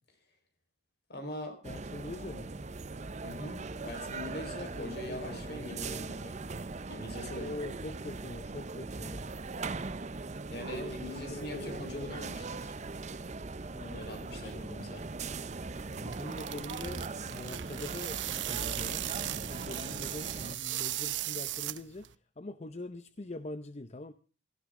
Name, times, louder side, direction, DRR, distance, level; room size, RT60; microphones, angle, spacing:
voice 1, 1.1-1.6 3.2-6.4 6.9-7.6 10.5-12.7 13.9-15.0, left 1 dB, 60° left, 6 dB, 4.7 m, -42 dB
voice 2, 1.6-2.5 4.4-6.2 7.3-9.2 10.6-12.3 13.7-14.9 15.9-22.1 22.4-24.1, left 2 dB, 35° left, 12 dB, 0.7 m, -44 dB
sound 1, 1.6-20.6, right 3 dB, 40° right, 0.7 m, -40 dB
sound 2, 15.8-22.1, right 13 dB, 90° right, 0.8 m, -37 dB
17.5 x 16.0 x 3.7 m, 0.37 s
head